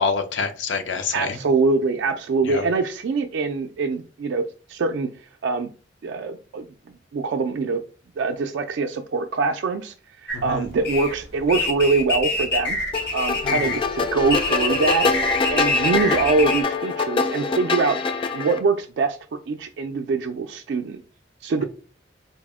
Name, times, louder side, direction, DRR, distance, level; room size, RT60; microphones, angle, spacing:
voice 1, 0.0-1.4 2.4-2.6 10.3-10.6 13.4-13.6, left 4 dB, 80° left, 7 dB, 0.6 m, -26 dB
voice 2, 1.1-4.4 4.7-5.1 5.4-5.7 6.0-7.8 8.2-9.9 10.2-12.8 13.1-15.1 15.5-18.0 18.3-19.2 19.5-21.0 21.4-21.6, right 4 dB, 70° right, 4 dB, 0.3 m, -23 dB
sound 1, 10.3-16.6, left 2 dB, 60° left, 0.9 m, -26 dB
sound 2, 12.9-18.6, left 4 dB, 30° left, 0.3 m, -25 dB
3.9 x 2.0 x 3.5 m, 0.37 s
head